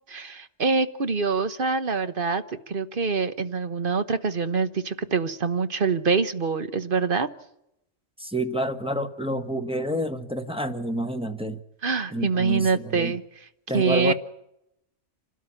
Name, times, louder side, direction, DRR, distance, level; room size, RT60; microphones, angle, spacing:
voice 1, 0.1-7.3 11.8-13.2 13.7-14.1, right 5 dB, 45° right, 10 dB, 1.2 m, -25 dB
voice 2, 8.2-11.6 12.1-13.1 13.7-14.1, equal, 5° right, 6 dB, 1.1 m, -28 dB
28.0 x 12.5 x 9.9 m, 0.82 s
omnidirectional pair, 1.4 m